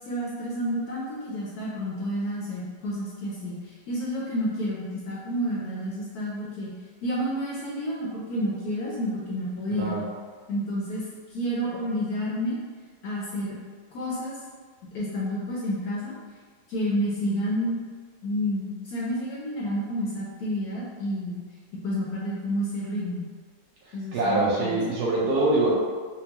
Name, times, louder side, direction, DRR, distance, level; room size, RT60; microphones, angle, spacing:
voice 1, 0.1-6.7 7.0-10.0 10.5-11.0 11.3-12.6 13.0-13.5 13.9-14.4 14.9-16.1 16.7-17.8 18.2-21.4 21.8-23.3 23.9-24.8, equal, 65° left, -6 dB, 1.0 m, -30 dB
voice 2, 24.1-25.7, right 2 dB, 70° right, -6 dB, 1.1 m, -23 dB
4.4 x 2.0 x 2.9 m, 1.5 s
omnidirectional pair, 2.0 m